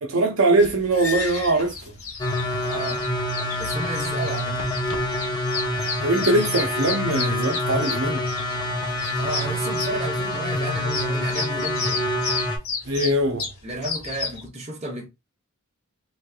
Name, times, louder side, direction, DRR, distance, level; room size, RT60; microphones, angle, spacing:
voice 1, 0.0-1.7 6.0-8.3 12.9-13.5, right 2 dB, 65° right, 0.6 m, -21 dB
sound 1, 0.6-14.5, left 4 dB, 70° left, 0.9 m, -32 dB
sound 2, 2.2-12.6, left 1 dB, 20° left, 0.6 m, -26 dB
voice 2, 2.6-3.0 3.6-4.7 9.2-12.0 13.6-15.0, right 2 dB, 30° right, 1.1 m, -32 dB
3.2 x 3.2 x 2.2 m
head